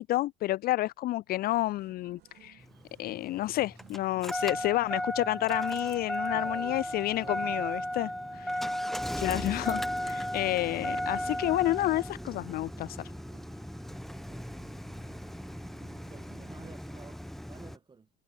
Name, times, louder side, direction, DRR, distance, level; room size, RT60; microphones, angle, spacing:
voice 1, 0.0-2.6 3.0-8.7 9.2-13.0, left 16 dB, 65° left, 0.4 m, -30 dB
sound 1, 1.5-16.7, right 16 dB, 80° right, 2.7 m, -59 dB
Engine starting, 2.6-17.8, equal, ahead, 0.8 m, -36 dB
voice 2, 6.3-7.6 14.2-14.6 16.0-18.1, right 5 dB, 25° right, 3.5 m, -52 dB
cardioid pair, 110°, 17 cm